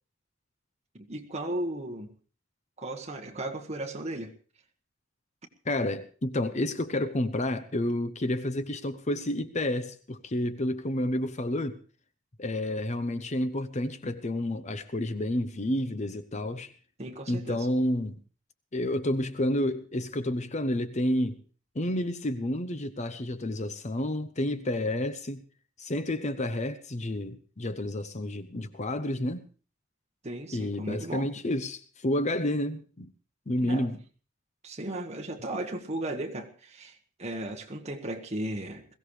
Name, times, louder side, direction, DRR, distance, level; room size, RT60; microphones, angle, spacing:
voice 1, 1.0-2.1 2.8-4.3 17.0-17.7 30.2-31.3 33.6-33.9 34.6-38.9, right 1 dB, 35° right, 1.7 m, -35 dB
voice 2, 5.7-11.8 12.4-16.7 17.3-18.2 18.7-21.4 21.7-25.4 25.8-29.5 30.5-33.1 33.5-34.0, left 1 dB, 35° left, 0.8 m, -30 dB
21.5 x 16.0 x 3.3 m
head